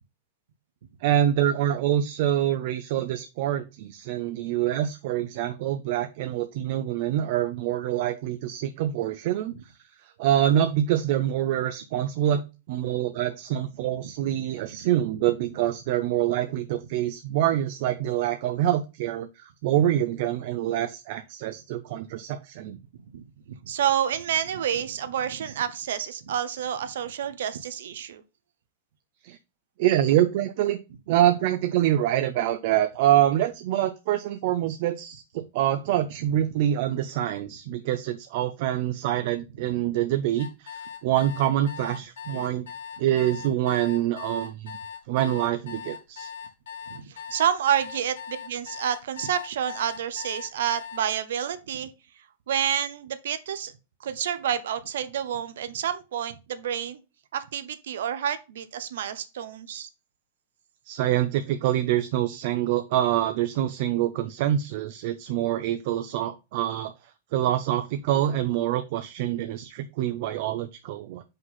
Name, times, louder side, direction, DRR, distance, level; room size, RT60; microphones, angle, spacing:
voice 1, 1.0-9.7 10.0-12.4 12.7-22.8 29.2-29.4 29.8-30.8 31.1-42.7 43.0-44.8 45.1-46.3 60.9-66.9 67.3-71.2, right 12 dB, 60° right, 0.6 m, -25 dB
voice 2, 23.1-28.2 46.9-51.9 52.5-53.7 54.0-57.0 57.3-59.9, right 9 dB, 80° right, 0.9 m, -29 dB
sound 1, 40.4-51.0, left 7 dB, 85° left, 1.6 m, -40 dB
5.3 x 4.0 x 5.5 m
hypercardioid pair, 135°, 0 cm